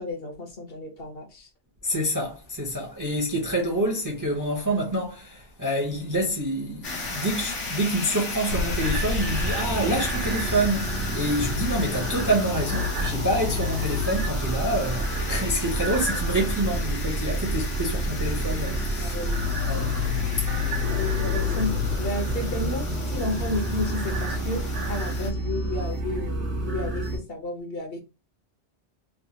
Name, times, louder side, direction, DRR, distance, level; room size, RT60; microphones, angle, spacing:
voice 1, 0.0-1.5 19.0-19.6 21.0-28.0, left 2 dB, 60° left, 0.9 m, -32 dB
voice 2, 1.8-19.3 19.6-21.0, right 1 dB, 20° right, 0.5 m, -27 dB
sound 1, 6.8-25.3, left 3 dB, 90° left, 1.3 m, -36 dB
sound 2, 8.5-27.2, left 1 dB, 85° right, 1.1 m, -28 dB
sound 3, 20.7-26.0, left 1 dB, 50° right, 0.8 m, -36 dB
3.3 x 2.2 x 2.7 m
omnidirectional pair, 1.2 m